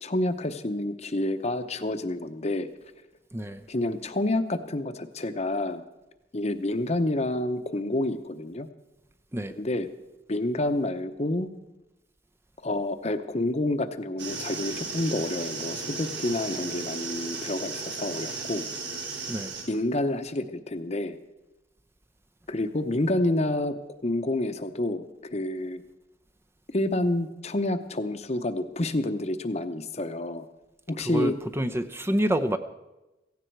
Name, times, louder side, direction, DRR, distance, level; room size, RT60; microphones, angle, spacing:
voice 1, 0.0-2.7 3.7-5.8 6.3-8.7 9.6-9.9 10.3-11.5 12.6-18.7 19.7-21.2 22.5-23.8 24.0-25.8 26.7-30.5 30.9-31.4, left 1 dB, 40° left, 9 dB, 0.9 m, -28 dB
voice 2, 3.3-3.7 9.3-9.6 19.3-19.6 31.0-32.6, right 1 dB, 15° right, 8 dB, 0.6 m, -28 dB
sound 1, 14.2-19.7, right 4 dB, 75° right, 3.5 m, -35 dB
16.5 x 16.0 x 4.7 m, 1.0 s
head